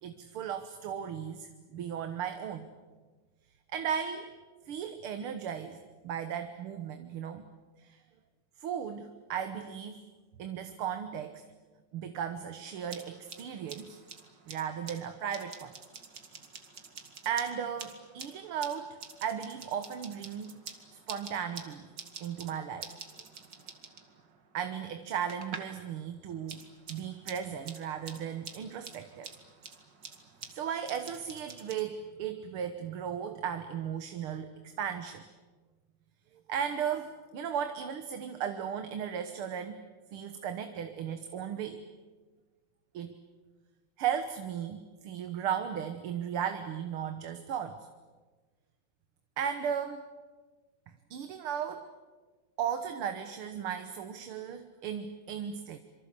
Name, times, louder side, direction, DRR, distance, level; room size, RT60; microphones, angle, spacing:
voice 1, 0.0-2.7 3.7-4.3 4.7-7.5 7.8-8.0 8.6-10.0 10.4-11.4 11.9-14.0 14.5-15.7 17.3-20.6 21.1-21.9 22.2-22.9 24.5-29.3 30.5-35.2 36.5-39.8 40.1-41.9 42.9-43.1 44.0-47.9 49.4-50.1 51.1-51.9 52.6-55.8, right 8 dB, 80° right, 8 dB, 2.1 m, -36 dB
sound 1, 12.7-25.8 26.1-31.8, right 5 dB, 55° right, 2.6 m, -48 dB
26.5 x 24.5 x 8.3 m, 1.3 s
omnidirectional pair, 2.4 m